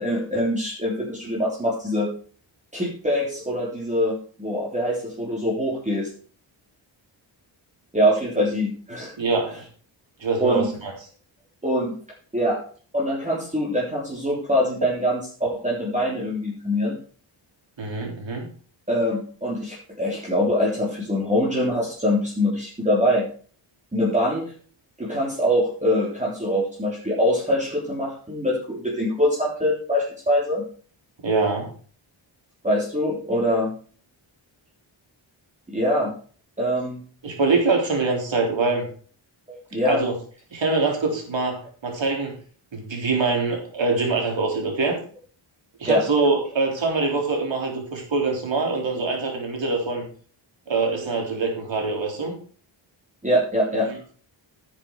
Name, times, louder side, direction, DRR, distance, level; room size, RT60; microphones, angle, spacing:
voice 1, 0.0-2.1 2.7-6.1 7.9-9.1 10.4-10.7 11.6-11.9 12.3-12.6 12.9-17.0 18.9-23.2 23.9-24.5 25.0-30.7 32.6-33.7 35.7-36.1 36.6-37.0 39.5-40.0 45.9-46.0 53.2-53.9, equal, 15° right, -5 dB, 3.4 m, -23 dB
voice 2, 9.2-9.5 10.2-10.9 17.8-18.5 31.2-31.7 37.2-38.9 39.9-40.1 40.5-42.4 42.7-45.0 45.8-50.0 50.7-52.4, right 3 dB, 65° right, 1 dB, 3.9 m, -24 dB
10.5 x 7.4 x 4.7 m, 0.43 s
wide cardioid pair, 100°, 48 cm